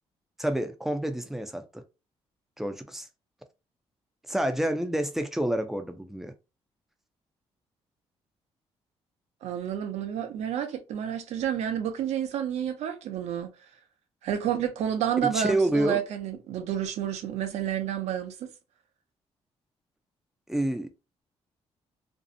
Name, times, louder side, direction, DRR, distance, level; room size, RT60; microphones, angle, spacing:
voice 1, 0.4-1.8 2.6-3.1 4.3-6.3 15.2-16.0 20.5-20.9, right 1 dB, 5° right, 0.4 m, -28 dB
voice 2, 9.4-13.5 14.2-18.5, right 9 dB, 80° right, 0.5 m, -30 dB
2.6 x 2.0 x 2.5 m
cardioid pair, 110°, 11 cm